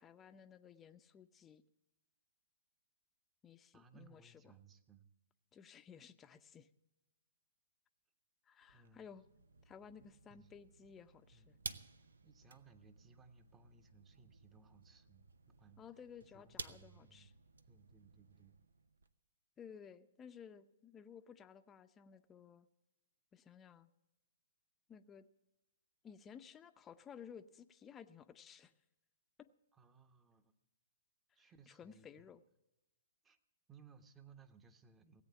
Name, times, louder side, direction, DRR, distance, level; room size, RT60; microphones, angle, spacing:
voice 1, 0.0-1.6 3.4-4.5 5.5-6.7 8.5-9.2 9.7-11.6 15.8-17.3 19.6-22.7 23.3-23.9 24.9-25.3 26.0-28.7 29.4-29.5 31.4-32.4, left 7 dB, 20° left, 10 dB, 0.7 m, -56 dB
voice 2, 3.7-5.1 8.7-9.1 10.0-10.5 11.3-11.6 12.2-15.8 16.3-17.3 17.7-18.5 29.7-30.5 31.4-32.3 33.2-33.4 33.7-35.2, right 6 dB, 15° right, 9 dB, 1.1 m, -63 dB
sound 1, 8.6-19.1, right 3 dB, 85° right, 0.8 m, -55 dB
17.5 x 8.2 x 7.0 m, 0.97 s
hypercardioid pair, 130°, 0 cm